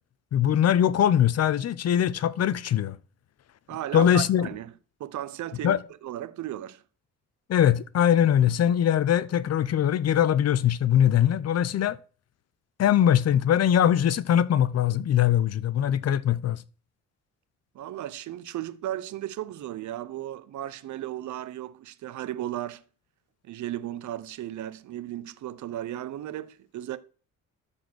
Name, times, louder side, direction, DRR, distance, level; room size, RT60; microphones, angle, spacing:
voice 1, 0.3-3.0 3.9-4.5 5.6-5.8 7.5-12.0 12.8-16.6, left 10 dB, 55° left, 0.8 m, -22 dB
voice 2, 3.7-4.7 5.0-6.8 17.7-22.8 23.4-27.0, right 13 dB, 75° right, 0.9 m, -35 dB
13.0 x 4.4 x 6.3 m
cardioid pair, 90°, 30 cm